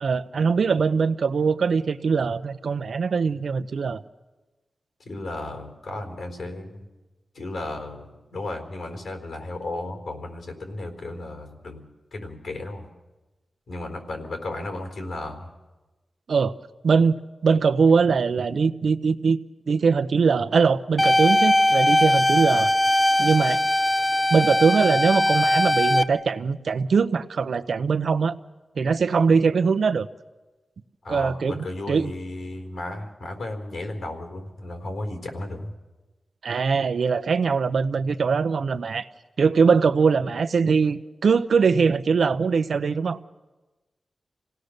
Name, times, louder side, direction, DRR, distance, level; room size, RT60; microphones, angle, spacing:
voice 1, 0.0-4.0 16.3-16.5 16.8-19.4 19.7-22.7 23.2-23.6 24.3-28.4 28.8-30.1 31.1-32.1 36.4-39.1 39.4-43.2, right 5 dB, 75° right, 11 dB, 0.8 m, -22 dB
voice 2, 5.1-6.9 7.3-11.8 12.1-12.9 13.7-15.5 31.0-35.7, left 2 dB, 85° left, 4 dB, 4.2 m, -34 dB
sound 1, 21.0-26.0, left 1 dB, 15° left, 0.6 m, -20 dB
27.5 x 17.5 x 6.6 m, 1.2 s
wide cardioid pair, 135°, 0 cm